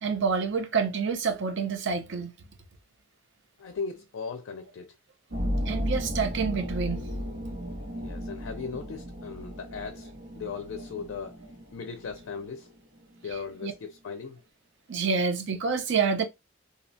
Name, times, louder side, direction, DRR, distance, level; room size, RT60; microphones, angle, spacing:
voice 1, 0.0-2.3 5.7-7.0 13.6-13.7 14.9-16.3, right 5 dB, 65° right, 0.6 m, -27 dB
voice 2, 3.6-5.0 7.9-11.4 11.7-12.7 13.2-14.4, left 5 dB, 65° left, 0.4 m, -38 dB
sound 1, 5.3-13.8, equal, 90° right, 1.4 m, -35 dB
2.7 x 2.1 x 2.6 m
head